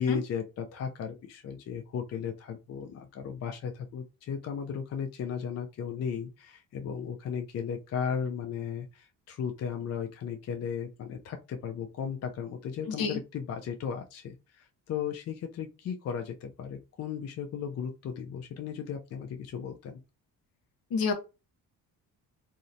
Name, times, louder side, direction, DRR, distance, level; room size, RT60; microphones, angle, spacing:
voice 1, 0.0-20.0, left 7 dB, 40° left, 4 dB, 0.4 m, -35 dB
voice 2, 12.9-13.2 20.9-21.1, left 5 dB, 65° left, 6 dB, 0.8 m, -29 dB
2.7 x 2.1 x 2.5 m, 0.29 s
supercardioid pair, 75°, 39 cm